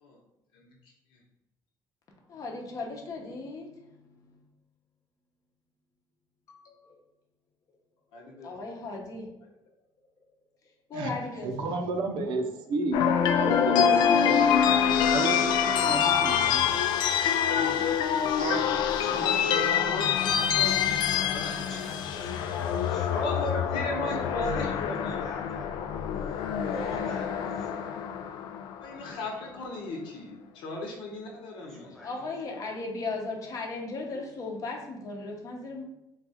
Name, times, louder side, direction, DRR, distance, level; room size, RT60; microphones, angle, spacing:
voice 1, 2.3-4.4 6.5-7.0 8.1-9.5 10.9-11.7 31.7-35.8, left 3 dB, 45° left, 1 dB, 0.8 m, -37 dB
voice 2, 8.1-8.5 17.5-18.2 19.0-20.7 21.3-21.7 23.1-25.2 28.8-32.0, left 2 dB, 90° left, 0 dB, 1.0 m, -36 dB
voice 3, 11.4-13.0 13.4-14.5, right 3 dB, 75° right, 4 dB, 0.6 m, -30 dB
sound 1, 12.9-29.1, left 8 dB, 70° left, 0.3 m, -26 dB
voice 4, 15.1-16.8 18.4-18.8, right 5 dB, 45° right, 6 dB, 0.4 m, -34 dB
voice 5, 16.7-18.1 19.0-19.6 21.4-23.6 23.9-24.8 25.1-25.9 26.6-27.9 31.5-32.1, equal, 5° left, -3 dB, 1.0 m, -46 dB
4.0 x 2.4 x 4.1 m, 0.91 s
cardioid pair, 160°, 8 cm